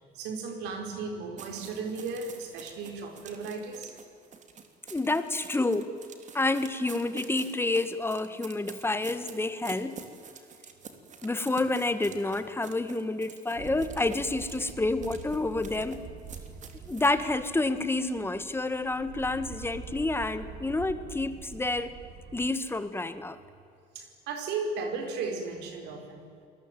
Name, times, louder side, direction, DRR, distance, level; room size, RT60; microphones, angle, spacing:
voice 1, 0.1-4.1 23.9-26.3, right 4 dB, 90° right, 5 dB, 5.1 m, -35 dB
sound 1, 1.4-17.2, right 6 dB, 45° right, 3.2 m, -48 dB
voice 2, 4.9-5.9 6.3-10.0 11.2-16.0 16.9-21.9 22.3-23.4, left 2 dB, 15° left, 11 dB, 1.8 m, -29 dB
sound 2, 13.5-22.5, right 6 dB, 70° right, 2.6 m, -45 dB
28.0 x 20.5 x 9.4 m, 2.3 s
cardioid pair, 110°, 17 cm